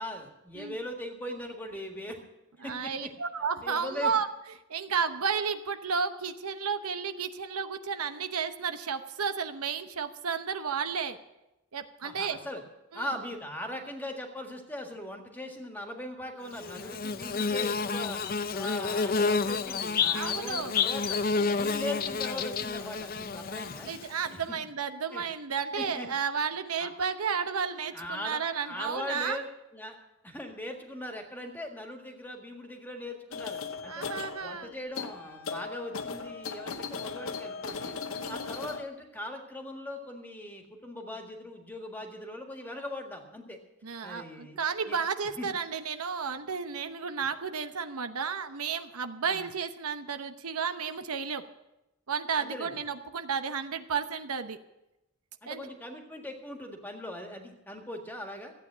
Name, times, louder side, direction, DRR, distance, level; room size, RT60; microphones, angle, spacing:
voice 1, 0.0-2.2 2.6-3.1 3.6-4.1 12.0-12.6 12.9-18.2 18.5-21.2 21.5-23.9 24.3-24.6 25.1-25.2 25.8-26.1 26.8-26.9 27.9-30.0 30.2-34.0 34.4-38.0 38.3-43.6 44.0-44.6 44.9-45.0 45.4-45.5 49.2-49.5 52.4-52.8 55.4-58.5, left 1 dB, 10° left, 3 dB, 1.7 m, -40 dB
voice 2, 2.6-4.3 4.7-11.2 11.7-12.4 12.9-13.1 20.1-20.7 23.8-29.4 33.9-34.7 38.2-38.4 43.8-51.4 52.1-54.6 55.5-55.6, right 6 dB, 90° right, 8 dB, 0.9 m, -32 dB
Bird / Buzz, 16.6-24.3, left 5 dB, 40° left, 0.5 m, -30 dB
sound 1, 33.3-38.8, left 5 dB, 70° left, 0.9 m, -38 dB
15.0 x 9.0 x 7.4 m, 0.95 s
head